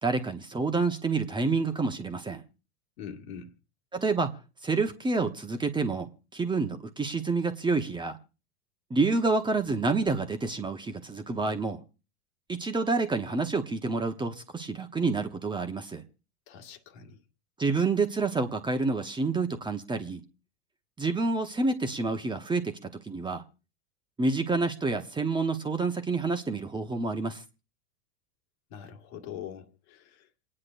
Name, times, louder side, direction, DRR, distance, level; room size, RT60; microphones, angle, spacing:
voice 1, 0.0-2.4 3.9-4.3 4.6-8.2 8.9-11.8 12.5-16.0 17.6-20.2 21.0-23.4 24.2-27.4, right 3 dB, 15° right, 1.0 m, -28 dB
voice 2, 3.0-3.5 16.5-17.2 28.7-30.4, left 8 dB, 60° left, 2.0 m, -43 dB
28.0 x 9.8 x 2.6 m
hypercardioid pair, 95°, 36 cm